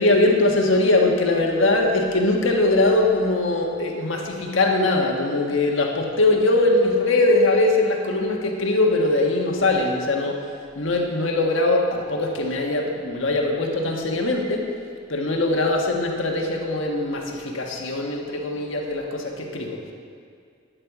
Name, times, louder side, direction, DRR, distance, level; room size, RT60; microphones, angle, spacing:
voice 1, 0.0-10.4 10.7-14.7 15.1-19.8, left 2 dB, 85° left, 1 dB, 1.4 m, -21 dB
10.5 x 8.7 x 7.2 m, 2.3 s
head